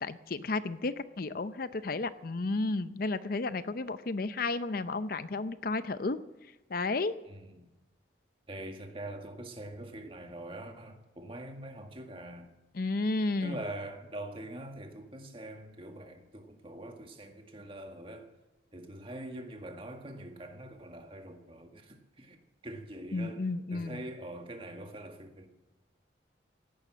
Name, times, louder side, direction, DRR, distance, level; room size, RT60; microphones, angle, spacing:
voice 1, 0.0-6.2 6.7-7.1 12.7-13.6 23.1-24.0, left 3 dB, 50° left, 0.6 m, -32 dB
voice 2, 7.3-7.7 8.5-12.5 13.4-18.3 18.7-22.4 22.6-25.5, right 1 dB, 30° right, 1.8 m, -44 dB
16.5 x 11.5 x 7.5 m
head